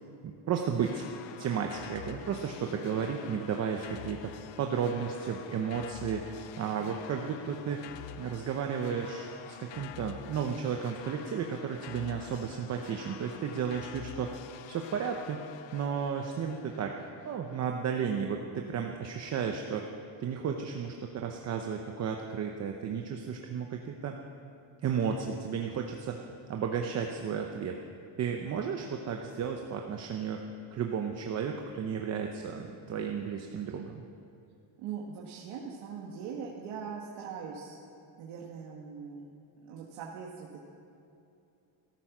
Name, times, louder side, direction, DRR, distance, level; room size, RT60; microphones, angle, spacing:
voice 1, 0.2-1.0 1.4-7.8 8.2-14.4 14.7-15.4 15.7-16.9 17.2-19.9 20.2-24.2 24.8-27.8 28.2-30.4 30.7-34.0, right 7 dB, 35° right, 3 dB, 0.7 m, -33 dB
sound 1, 0.8-17.6, left 12 dB, 70° left, 0.7 m, -47 dB
voice 2, 34.8-37.8 38.2-39.3 39.6-40.6, right 6 dB, 85° right, -3 dB, 1.7 m, -41 dB
13.5 x 13.5 x 6.0 m, 2.6 s
cardioid pair, 175°, 47 cm